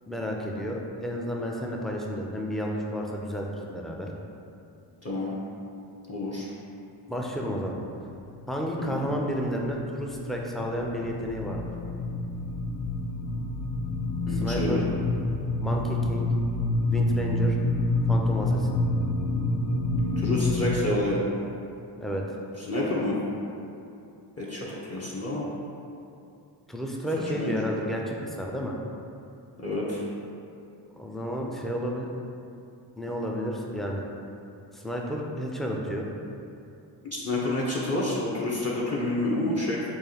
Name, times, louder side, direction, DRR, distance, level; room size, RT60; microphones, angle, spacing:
voice 1, 0.1-4.1 7.1-7.8 8.5-11.6 14.3-14.8 15.6-16.3 16.9-17.6 18.1-18.8 22.0-22.2 26.7-28.8 30.9-32.1 33.0-34.1 34.7-36.1, equal, ahead, -1 dB, 0.4 m, -31 dB
voice 2, 5.0-5.3 6.1-6.5 8.8-9.0 14.3-14.8 20.2-21.2 22.6-23.2 24.4-25.5 27.4-27.5 29.6-30.0 37.1-39.8, left 2 dB, 30° left, -6 dB, 0.7 m, -28 dB
sound 1, 8.1-8.5 8.8-20.8, left 2 dB, 75° left, 0.5 m, -28 dB
4.6 x 2.3 x 2.8 m, 2.6 s
supercardioid pair, 50°, 50 cm